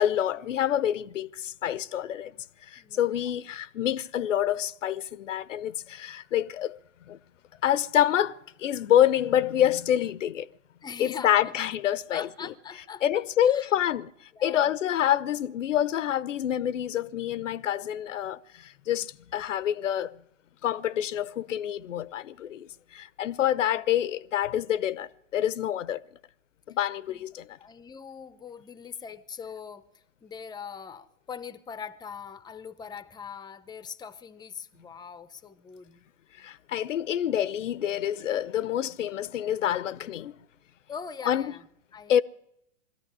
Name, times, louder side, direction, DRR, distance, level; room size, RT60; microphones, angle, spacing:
voice 1, 0.0-2.3 2.7-6.8 7.1-7.2 7.6-8.3 8.6-10.5 11.0-12.3 13.0-14.1 14.4-20.1 20.6-26.0 26.7-27.5 36.4-40.3 41.3-41.5 42.1-42.2, left 11 dB, 85° left, 0.9 m, -27 dB
voice 2, 2.8-3.3 10.8-11.5 12.1-13.7 14.3-14.7 27.1-27.2 27.6-36.0 40.9-41.7 41.9-42.2, left 6 dB, 10° left, 0.8 m, -42 dB
22.0 x 13.5 x 9.8 m
hypercardioid pair, 125°, 37 cm